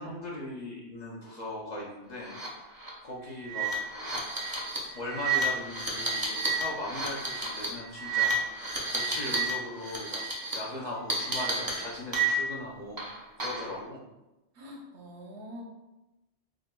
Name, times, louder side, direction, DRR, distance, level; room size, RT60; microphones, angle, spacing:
voice 1, 0.0-2.8 3.0-3.7 4.9-10.3 10.5-13.0 13.4-14.0, left 1 dB, 50° left, -4 dB, 0.6 m, -39 dB
sound 1, 2.2-2.5 2.8-2.9 3.4-9.5 9.8-10.5 11.1-12.6 13.0-13.7, right 4 dB, 30° right, 0.4 m, -31 dB
voice 2, 14.6-15.6, left 1 dB, 75° right, 0 dB, 0.9 m, -44 dB
4.8 x 2.1 x 2.2 m, 1.0 s
omnidirectional pair, 1.2 m